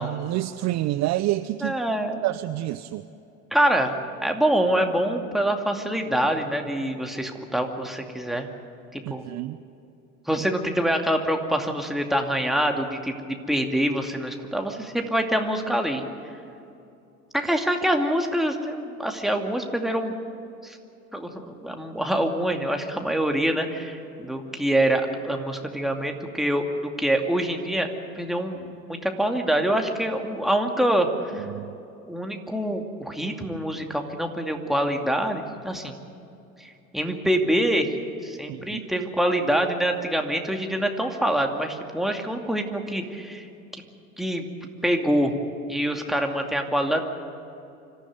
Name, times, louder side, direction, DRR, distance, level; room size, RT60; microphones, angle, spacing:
voice 1, 0.0-1.8 2.2-3.0 9.1-9.6 31.3-31.8 38.5-38.8, right 16 dB, 40° right, 14 dB, 0.6 m, -28 dB
voice 2, 1.6-2.2 3.5-3.9 4.2-8.5 8.9-9.2 10.3-16.0 17.3-20.1 20.6-20.8 21.1-27.9 28.2-31.1 31.3-31.5 32.1-36.0 36.6-37.9 38.2-43.5 44.2-44.4 44.8-45.3 45.7-47.0, right 1 dB, ahead, 3 dB, 2.5 m, -25 dB
25.5 x 15.0 x 9.3 m, 2.7 s
figure-of-eight pair, 70°, 43 cm